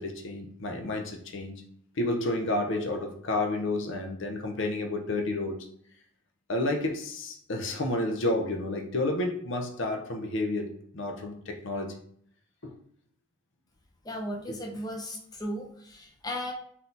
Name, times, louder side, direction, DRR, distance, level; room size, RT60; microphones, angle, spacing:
voice 1, 0.0-1.6 2.0-5.6 6.5-11.9 12.6-12.7 14.5-14.6, left 2 dB, 60° left, 3 dB, 0.7 m, -30 dB
voice 2, 14.0-16.5, equal, 20° left, -1 dB, 0.7 m, -36 dB
4.1 x 2.7 x 3.8 m, 0.65 s
head